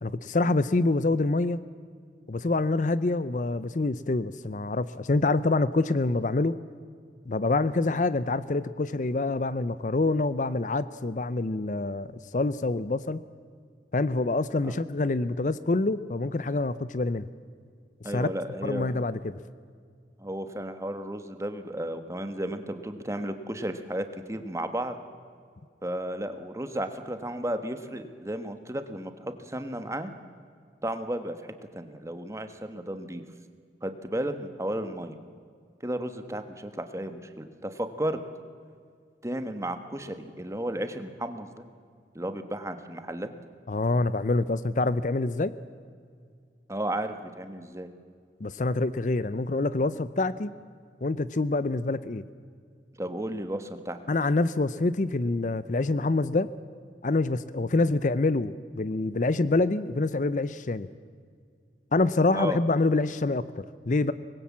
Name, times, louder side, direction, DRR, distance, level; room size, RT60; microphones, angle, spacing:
voice 1, 0.0-1.6 2.3-6.6 7.3-13.2 13.9-17.2 18.0-18.3 18.6-19.4 43.7-45.5 48.4-50.5 51.0-52.2 54.1-56.5 57.0-60.9 61.9-64.1, left 2 dB, 45° left, 15 dB, 0.6 m, -26 dB
voice 2, 18.0-19.0 20.2-24.9 25.8-30.1 30.8-33.2 33.8-35.2 35.8-38.2 39.2-41.6 42.1-43.3 46.7-47.9 53.0-54.0 62.3-62.6, right 1 dB, 15° right, 8 dB, 1.3 m, -33 dB
24.5 x 20.5 x 7.3 m, 2.1 s
head